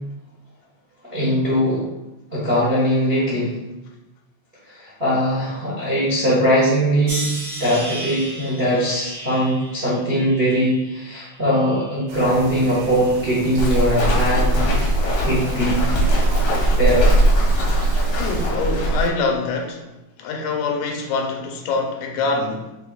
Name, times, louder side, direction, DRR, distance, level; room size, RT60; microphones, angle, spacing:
voice 1, 1.1-1.8 2.3-3.6 4.7-7.3 7.6-14.6 15.2-15.9 16.7-17.1, equal, 70° right, -6 dB, 0.5 m, -20 dB
sound 1, 7.1-12.2 12.7-13.4 14.1-14.4, right 1 dB, 50° right, 0.9 m, -35 dB
sound 2, 12.1-18.5, right 3 dB, 85° right, 2.1 m, -35 dB
Walk footsteps, 13.6-19.1, right 1 dB, 70° left, 1.3 m, -19 dB
voice 2, 18.2-19.9 20.2-22.8, left 3 dB, 85° left, 2 dB, 2.0 m, -25 dB
7.8 x 2.9 x 2.3 m, 0.97 s
omnidirectional pair, 3.4 m